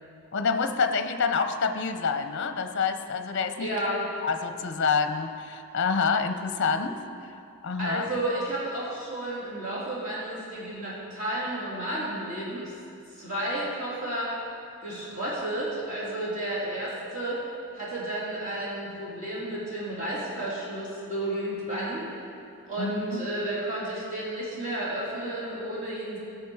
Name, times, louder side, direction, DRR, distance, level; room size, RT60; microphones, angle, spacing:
voice 1, 0.3-3.7 4.2-7.0 7.6-8.1 22.8-23.3, left 5 dB, 50° left, 8 dB, 0.6 m, -27 dB
voice 2, 3.6-4.1 7.8-12.7 13.1-14.3 14.8-17.4 17.7-22.1 22.7-26.2, right 1 dB, 35° right, -8 dB, 3.2 m, -32 dB
17.5 x 6.7 x 4.8 m, 2.6 s
head